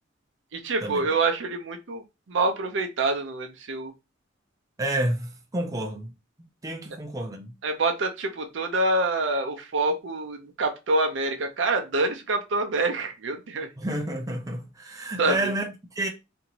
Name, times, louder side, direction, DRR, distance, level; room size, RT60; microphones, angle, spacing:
voice 1, 0.5-2.0 2.3-3.9 7.6-13.7 15.2-15.5, right 2 dB, 65° right, 0.6 m, -26 dB
voice 2, 4.8-6.1 6.6-7.5 13.8-16.1, right 1 dB, 15° right, 0.5 m, -30 dB
2.7 x 2.6 x 2.9 m
head